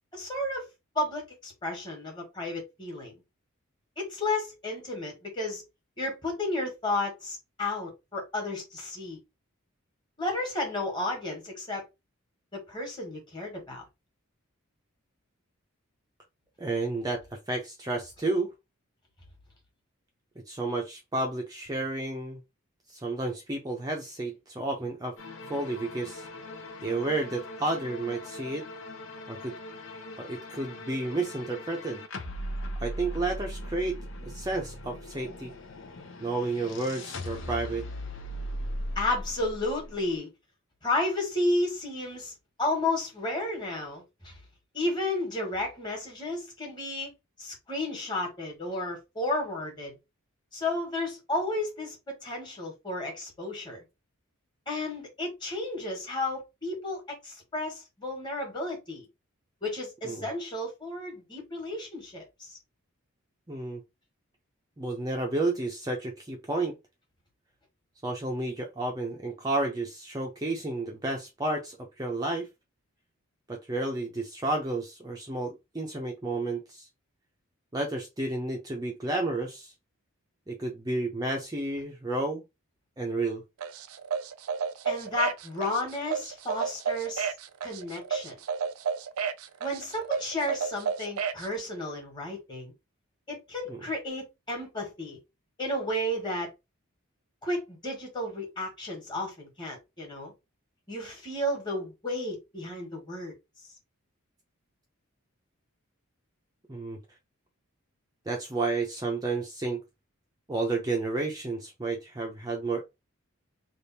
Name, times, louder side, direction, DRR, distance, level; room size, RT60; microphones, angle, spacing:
voice 1, 0.1-0.6 0.9-3.2 4.0-5.6 6.0-9.2 10.2-11.8 12.5-13.8 38.9-40.3 40.8-42.3 42.6-44.4 44.7-47.1 47.4-50.0 50.5-53.8 54.7-59.1 59.6-62.6 84.8-87.3 87.6-88.4 89.6-92.7 93.3-95.2 95.6-96.5 97.4-100.3 100.9-103.3, left 1 dB, 20° left, 1.6 m, -32 dB
voice 2, 16.6-18.5 20.5-22.4 22.9-25.2 25.5-26.3 26.8-28.6 29.3-29.5 30.2-32.0 32.8-35.5 36.2-37.8 60.0-60.3 63.5-63.8 64.8-66.7 68.0-72.5 73.5-76.9 77.7-79.7 80.5-82.4 83.0-83.4 93.7-93.8 106.7-107.0 108.3-109.8 110.5-112.8, right 2 dB, 15° right, 0.6 m, -31 dB
sound 1, 25.2-40.2, left 1 dB, 60° left, 0.7 m, -39 dB
sound 2, 83.6-91.5, right 6 dB, 75° right, 0.4 m, -32 dB
3.4 x 2.5 x 4.1 m
head